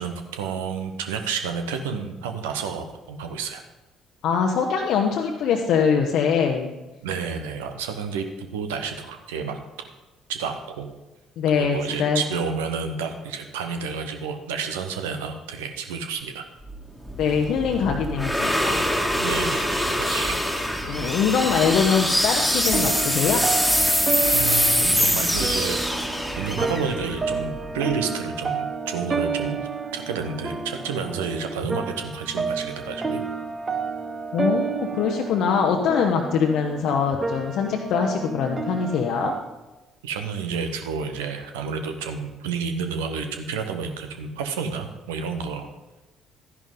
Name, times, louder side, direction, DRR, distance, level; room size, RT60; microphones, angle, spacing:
voice 1, 0.0-3.6 7.0-9.9 10.3-10.9 11.5-16.4 19.2-21.1 24.0-26.0 26.4-29.6 29.9-33.2 40.0-45.7, right 5 dB, 75° right, 6 dB, 1.0 m, -30 dB
voice 2, 4.2-6.7 11.4-12.2 17.2-18.8 20.9-23.4 34.3-39.3, left 6 dB, 60° left, 1 dB, 0.9 m, -23 dB
sound 1, 16.7-27.9, equal, ahead, 2.0 m, -24 dB
sound 2, 22.6-39.4, right 4 dB, 30° right, 1.0 m, -30 dB
12.5 x 10.5 x 3.8 m, 1.1 s
figure-of-eight pair, 50°, 0 cm